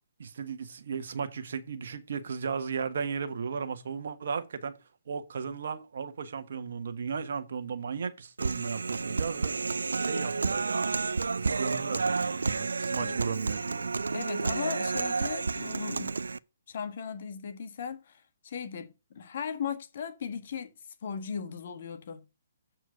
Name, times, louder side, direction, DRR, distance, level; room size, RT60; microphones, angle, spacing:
voice 1, 0.2-4.8 5.1-9.5 10.0-10.9 11.3-13.9, right 6 dB, 65° right, 1.3 m, -35 dB
Human voice, 8.4-16.4, right 4 dB, 85° right, 0.4 m, -30 dB
voice 2, 14.1-16.2 16.7-20.7 21.0-22.2, left 7 dB, 55° left, 1.5 m, -37 dB
7.9 x 4.5 x 6.3 m
hypercardioid pair, 140°, 0 cm